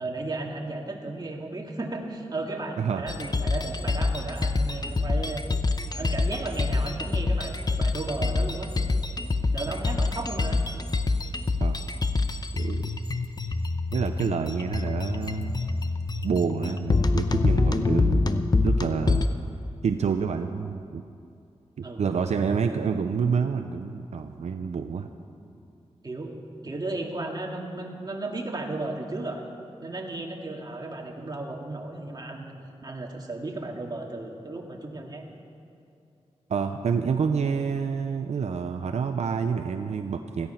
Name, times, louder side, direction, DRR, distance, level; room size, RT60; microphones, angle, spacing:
voice 1, 0.0-5.4 6.0-8.7 9.5-10.7 21.8-22.0 26.0-26.4 26.6-29.4 29.8-35.2, right 2 dB, 35° right, 0 dB, 2.2 m, -34 dB
sound 1, 3.1-19.3, left 3 dB, 35° left, 0.8 m, -26 dB
voice 2, 12.5-12.9 13.9-15.5 16.2-18.3 18.6-19.2 19.8-21.0 21.8-25.1 36.5-40.5, right 6 dB, 80° right, 7 dB, 0.6 m, -28 dB
16.5 x 14.5 x 5.8 m, 2.6 s
wide cardioid pair, 85°, 11 cm